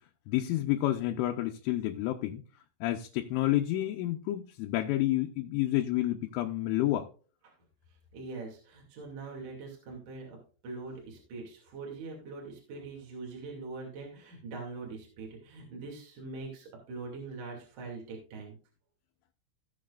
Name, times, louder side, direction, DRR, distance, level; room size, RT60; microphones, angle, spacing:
voice 1, 0.3-2.4 2.8-7.1, left 14 dB, 80° left, 3 dB, 3.1 m, -29 dB
voice 2, 7.9-10.4 10.6-18.6, right 3 dB, 45° right, -1 dB, 3.4 m, -43 dB
18.5 x 6.4 x 2.5 m, 0.39 s
omnidirectional pair, 6.0 m